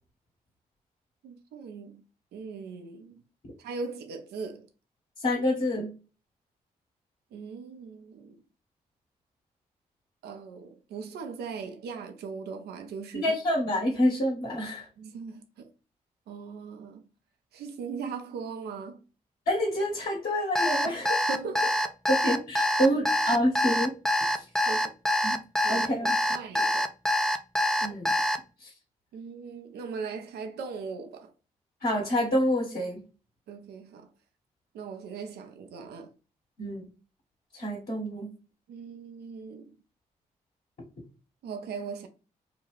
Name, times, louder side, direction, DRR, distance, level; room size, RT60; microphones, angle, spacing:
voice 1, 1.2-2.0 2.3-3.2 3.6-4.7 7.3-8.4 10.2-13.3 15.0-15.7 16.3-17.0 17.5-19.0 20.8-22.2 24.7-24.9 25.6-26.9 29.1-31.3 33.5-34.1 34.7-36.1 38.7-39.8 41.4-42.1, right 5 dB, 75° right, 0.6 m, -39 dB
voice 2, 5.2-5.9 13.1-14.8 19.5-21.1 22.1-23.9 24.3-24.4 25.2-25.4 25.7-26.1 27.8-28.1 28.6-28.7 31.8-33.0 36.6-36.9 37.5-38.3, equal, 60° left, 1.4 m, -27 dB
Alarm, 20.5-28.4, left 1 dB, 5° left, 0.4 m, -25 dB
2.9 x 2.3 x 3.1 m
hypercardioid pair, 40°, 17 cm